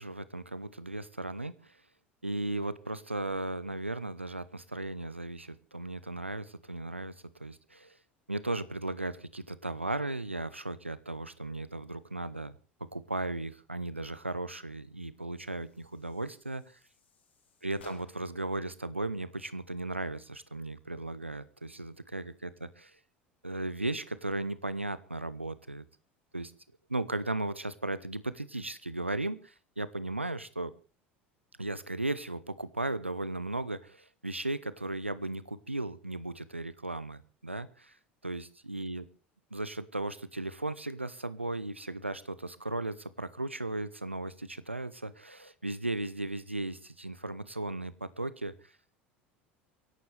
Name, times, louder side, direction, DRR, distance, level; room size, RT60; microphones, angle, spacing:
voice 1, 0.0-1.8 2.2-7.1 7.4-8.0 8.3-12.5 12.9-16.8 17.6-22.9 23.4-25.8 26.3-26.5 26.9-30.7 31.6-38.0 38.2-39.0 39.5-48.7, right 2 dB, 90° right, 17 dB, 0.8 m, -36 dB
sound 1, 15.4-18.5, left 3 dB, 75° left, 3.3 m, -59 dB
29.0 x 11.5 x 3.4 m, 0.35 s
figure-of-eight pair, 70°, 6 cm